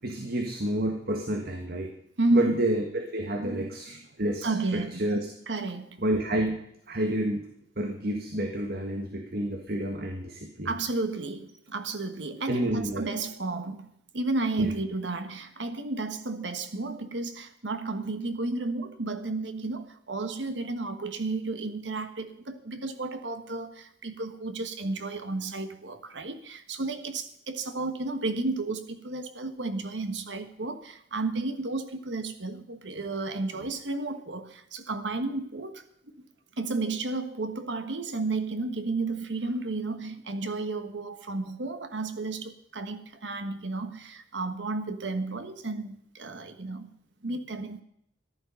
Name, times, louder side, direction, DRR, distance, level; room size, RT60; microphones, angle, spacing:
voice 1, 0.0-1.9 2.3-5.3 6.0-6.6 6.9-7.4 7.8-10.7 12.5-13.1 14.6-14.7 40.0-40.1, right 1 dB, 60° right, 1.7 m, -29 dB
voice 2, 2.2-2.6 3.4-3.7 4.4-5.1 5.5-6.0 10.6-35.8 36.6-46.9 47.2-47.8, right 3 dB, 85° right, 1.4 m, -32 dB
14.5 x 11.5 x 5.7 m
head